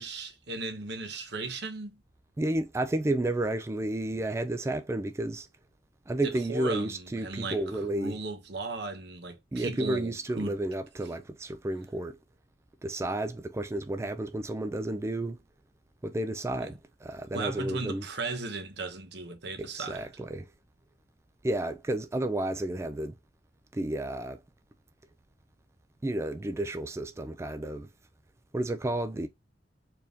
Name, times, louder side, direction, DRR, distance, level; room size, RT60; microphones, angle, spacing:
voice 1, 0.0-2.0 6.2-7.6 7.9-10.6 16.6-16.7 17.3-20.1, right 3 dB, 65° right, 1.0 m, -36 dB
voice 2, 2.4-5.5 6.1-8.2 9.5-12.2 12.8-15.4 16.0-18.0 19.6-20.4 21.4-23.1 23.7-24.4 26.0-27.9 28.5-29.3, right 1 dB, 15° right, 0.3 m, -31 dB
4.5 x 3.5 x 2.6 m
head